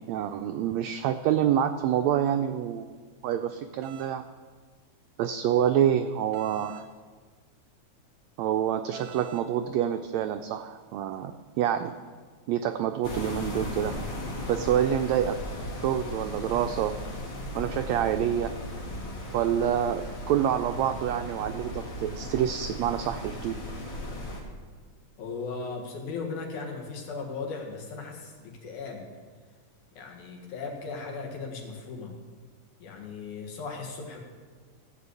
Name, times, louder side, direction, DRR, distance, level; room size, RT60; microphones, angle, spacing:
voice 1, 0.0-2.9 3.2-4.2 5.2-6.9 8.4-11.9 12.5-14.0 14.5-15.4 15.8-17.0 17.5-18.5 19.3-23.6, right 10 dB, 85° right, 8 dB, 1.5 m, -27 dB
sound 1, 3.8-4.1 6.3-6.9 8.9-9.5, right 11 dB, 70° right, 1.5 m, -45 dB
sound 2, 13.0-24.4, left 1 dB, 45° left, 3.0 m, -36 dB
voice 2, 25.2-29.0 29.9-32.2 32.8-34.2, left 4 dB, 75° left, 1 dB, 3.1 m, -37 dB
15.0 x 5.4 x 8.2 m, 1.5 s
omnidirectional pair, 3.6 m